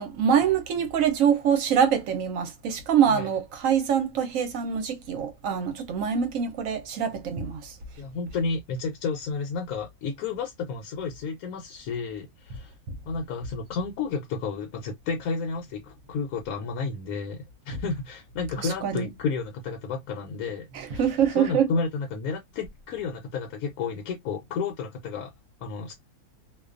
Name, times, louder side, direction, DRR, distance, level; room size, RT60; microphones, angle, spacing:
voice 1, 0.0-7.8 12.9-13.0 18.6-19.1 20.7-21.7, right 8 dB, 65° right, 0.9 m, -24 dB
voice 2, 8.0-12.7 13.1-21.1 21.4-25.3 25.6-25.9, left 4 dB, 75° left, 1.0 m, -32 dB
2.5 x 2.2 x 2.4 m
omnidirectional pair, 1.6 m